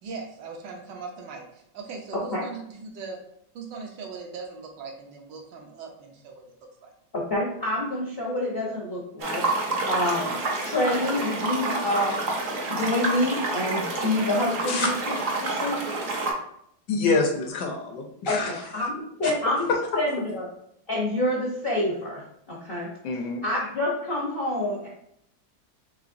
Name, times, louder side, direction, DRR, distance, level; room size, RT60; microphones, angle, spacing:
voice 1, 0.0-3.2 3.5-6.9, right 4 dB, 75° right, 1 dB, 1.3 m, -40 dB
voice 2, 7.3-9.4 9.9-10.4 10.6-12.2 12.7-14.9 15.4-15.8 18.3-18.9 19.2-19.7 19.9-20.5 20.9-22.2 22.5-22.9 23.4-24.9, left 1 dB, 55° left, -5 dB, 0.6 m, -27 dB
sound 1, 9.2-16.3, right 2 dB, 60° right, 0.9 m, -28 dB
voice 3, 16.9-18.9 19.2-19.3 19.7-19.8 23.0-23.4, left 4 dB, 75° left, 2 dB, 1.1 m, -26 dB
4.8 x 3.3 x 2.5 m, 0.71 s
omnidirectional pair, 2.1 m